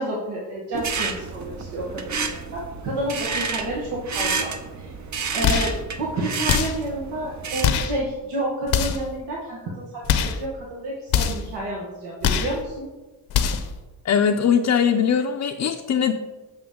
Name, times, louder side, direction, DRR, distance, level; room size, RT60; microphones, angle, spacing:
voice 1, 0.0-4.5 4.8-4.9 5.3-12.9, right 1 dB, 85° right, -4 dB, 1.3 m, -30 dB
sound 1, 0.7-7.8, right 4 dB, 45° right, 0.8 m, -30 dB
sound 2, 5.4-5.8 6.5-6.9 7.6-8.0 8.7-9.1 10.0-10.4 11.1-11.5 12.2-12.6 13.3-13.7, left 8 dB, 80° left, 0.8 m, -23 dB
voice 2, 14.0-16.1, left 7 dB, 45° left, 3 dB, 0.5 m, -20 dB
7.9 x 5.7 x 3.6 m, 1.2 s
cardioid pair, 80°, 39 cm